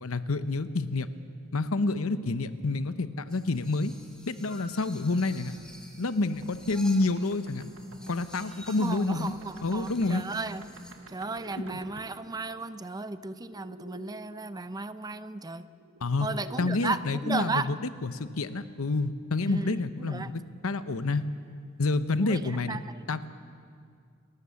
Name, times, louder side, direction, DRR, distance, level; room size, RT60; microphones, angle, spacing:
voice 1, 0.0-1.1 1.5-3.9 4.3-5.5 6.0-7.7 8.1-9.3 9.6-10.2 16.0-16.3 16.6-17.8 18.0-21.3 21.8-22.8 23.1-23.3, left 3 dB, 80° left, 12 dB, 0.9 m, -28 dB
sound 1, 3.3-10.9, left 1 dB, 5° left, 2.6 m, -50 dB
sound 2, 6.2-14.1 15.4-16.6, right 2 dB, 80° right, 1.5 m, -51 dB
voice 2, 8.7-10.6 11.1-15.7 16.2-17.7 19.5-20.3 22.2-22.8, right 3 dB, 20° right, 13 dB, 0.5 m, -35 dB
28.5 x 13.5 x 7.0 m, 2.2 s
head